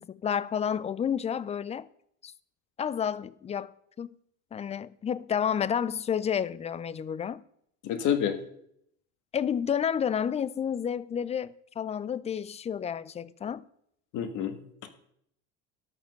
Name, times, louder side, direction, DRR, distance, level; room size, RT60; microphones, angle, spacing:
voice 1, 0.0-1.9 2.2-2.3 2.8-3.7 4.0-4.1 4.5-7.4 9.3-13.6, left 8 dB, 20° left, 0.3 m, -30 dB
voice 2, 7.8-8.4 14.1-14.9, left 9 dB, 50° left, 1.7 m, -29 dB
13.0 x 5.7 x 6.3 m
supercardioid pair, 100°, 37 cm